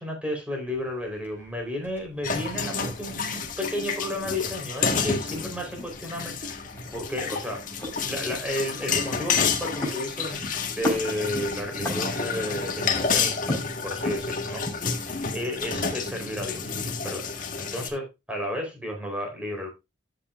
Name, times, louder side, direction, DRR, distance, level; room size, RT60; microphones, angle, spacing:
voice 1, 0.0-6.6 6.9-13.4 13.8-15.1 15.3-17.3 17.6-19.7, left 1 dB, 5° right, 4.1 m, -33 dB
sound 1, 0.7-17.7, left 1 dB, 10° left, 4.6 m, -39 dB
sound 2, 2.2-17.9, left 5 dB, 45° left, 1.6 m, -30 dB
13.5 x 6.9 x 2.5 m
head